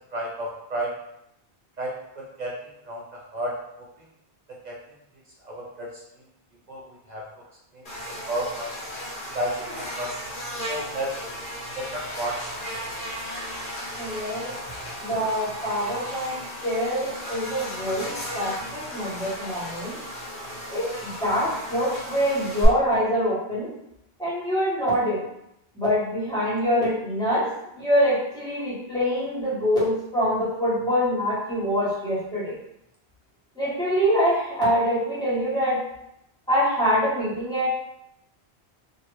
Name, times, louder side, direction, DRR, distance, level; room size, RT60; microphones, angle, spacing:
voice 1, 0.1-0.9 1.8-2.5 2.9-3.9 4.6-4.8 5.4-5.9 6.7-7.2 7.7-7.8 8.3-8.7 9.3-10.1 10.7-11.2 11.8-12.4 12.8-12.9, right 1 dB, 55° right, -3 dB, 0.5 m, -32 dB
Buzz, 7.8-22.6, equal, 55° left, 1.1 m, -35 dB
voice 2, 14.0-14.5 15.0-20.0 20.7-23.7 24.2-25.2 25.7-27.5 27.7-32.5 33.6-35.8 36.5-37.7, equal, 5° left, -10 dB, 1.2 m, -25 dB
2.7 x 2.5 x 3.0 m, 0.81 s
omnidirectional pair, 1.1 m